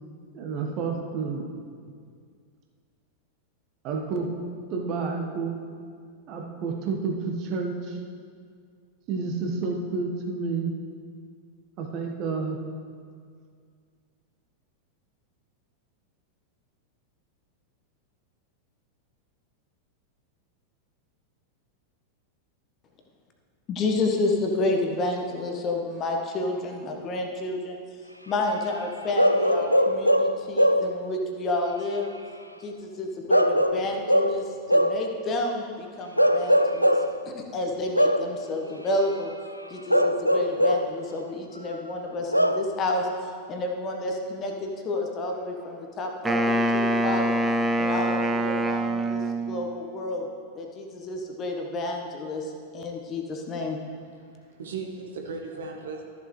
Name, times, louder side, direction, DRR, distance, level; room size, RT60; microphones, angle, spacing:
voice 1, 0.3-1.4 3.8-4.3 4.7-5.6 6.3-8.0 9.1-10.7 11.8-12.6, right 4 dB, 40° right, 2 dB, 1.3 m, -30 dB
voice 2, 23.7-27.8 28.3-32.1 32.6-37.0 37.2-39.3 39.7-47.4 47.8-50.3 50.5-53.8, left 2 dB, 30° left, 2 dB, 1.2 m, -30 dB
Bark / Livestock farm animals working animals, 29.2-31.0 33.3-35.1 36.2-37.2 37.9-38.3 39.9-41.0 42.3-42.7, equal, 90° right, 0.3 m, -21 dB
Wind instrument woodwind instrument, 46.2-49.7, right 1 dB, 15° right, 0.5 m, -25 dB
voice 3, 54.1-56.0, right 4 dB, 65° right, 2 dB, 1.2 m, -37 dB
13.5 x 7.1 x 3.2 m, 2.1 s
figure-of-eight pair, 90°, 0 cm